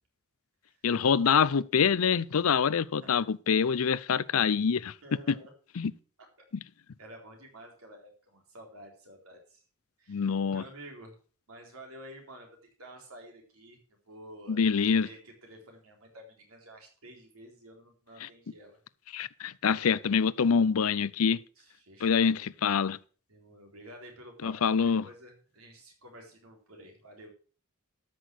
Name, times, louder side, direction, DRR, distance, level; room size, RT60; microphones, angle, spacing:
voice 1, 0.8-4.9 5.3-5.4 5.8-5.9 10.1-10.6 14.5-15.1 18.2-18.3 19.1-21.4 22.0-23.0 24.4-25.0, left 6 dB, 75° left, 0.5 m, -25 dB
voice 2, 3.0-3.3 5.0-5.5 6.4-6.5 7.0-9.6 10.0-11.2 11.5-13.8 14.1-18.8 21.6-22.6 23.3-24.5 24.8-27.3, right 1 dB, 75° right, 3.9 m, -51 dB
13.0 x 6.2 x 6.2 m
head